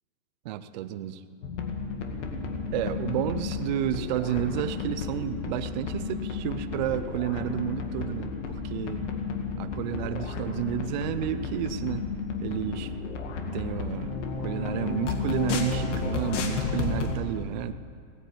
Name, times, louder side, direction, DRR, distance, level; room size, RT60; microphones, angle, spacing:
voice 1, 0.4-1.2 2.7-9.0 9.6-12.1 12.4-12.9 13.5-17.7, right 11 dB, 35° right, 11 dB, 0.5 m, -31 dB
sound 1, 1.4-17.2, left 4 dB, 65° left, 2.1 m, -32 dB
17.0 x 10.0 x 8.3 m, 2.2 s
supercardioid pair, 160°, 39 cm